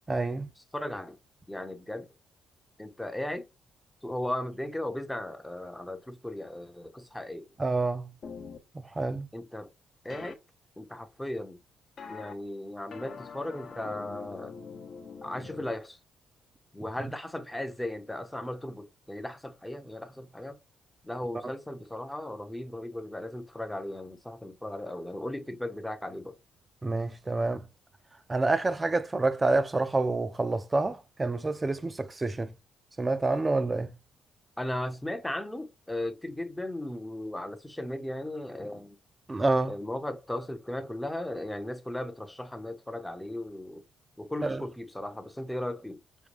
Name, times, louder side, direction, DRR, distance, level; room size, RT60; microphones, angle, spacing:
voice 1, 0.1-0.5 7.6-8.1 8.7-9.3 26.8-27.7 28.3-32.5 33.0-34.0 39.3-39.7 44.4-44.6, right 2 dB, 20° right, 0.6 m, -28 dB
voice 2, 0.7-1.2 1.5-2.1 2.8-3.5 4.0-7.4 9.3-9.7 10.0-10.4 10.8-11.6 12.1-14.6 15.2-16.0 16.7-20.6 21.0-26.4 34.6-39.0 39.7-43.8 44.2-46.0, left 1 dB, 5° left, 0.8 m, -36 dB
sound 1, 8.2-8.6 10.1-10.3 12.0-12.3 12.9-15.7, left 5 dB, 50° left, 0.9 m, -43 dB
5.2 x 2.3 x 3.3 m
cardioid pair, 90°, 0 cm